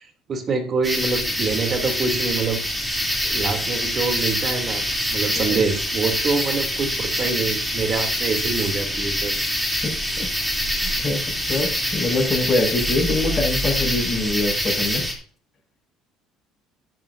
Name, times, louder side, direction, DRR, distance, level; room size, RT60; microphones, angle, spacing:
voice 1, 0.0-2.6 3.2-4.8 5.1-9.3, right 4 dB, 40° right, 4 dB, 3.2 m, -25 dB
sound 1, 0.8-15.1, equal, ahead, 3.4 m, -25 dB
voice 2, 9.8-10.3 11.0-15.1, left 2 dB, 30° left, -6 dB, 6.3 m, -24 dB
12.5 x 12.0 x 2.8 m, 0.42 s
supercardioid pair, 90°, 0 cm